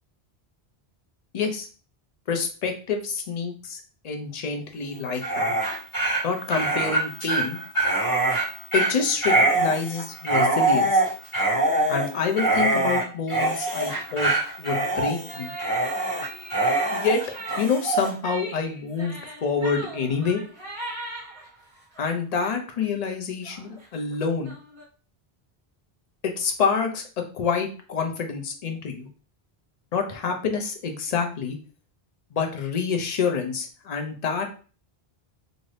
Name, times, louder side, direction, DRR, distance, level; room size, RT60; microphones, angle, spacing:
voice 1, 1.3-1.7 2.3-5.5 6.2-7.6 8.7-11.0 11.9-14.3 14.6-15.5 16.9-17.2 17.6-20.4 22.0-24.5 26.2-27.1 27.3-29.1 29.9-31.6 32.3-34.5, left 5 dB, 50° left, 4 dB, 0.6 m, -27 dB
Dog, 5.1-18.1, right 2 dB, 30° left, 1.4 m, -24 dB
sound 1, 15.3-22.1 22.5-22.8 23.1-23.2 23.4-24.8, right 1 dB, 30° right, 0.9 m, -40 dB
2.6 x 2.5 x 3.2 m, 0.38 s
omnidirectional pair, 1.0 m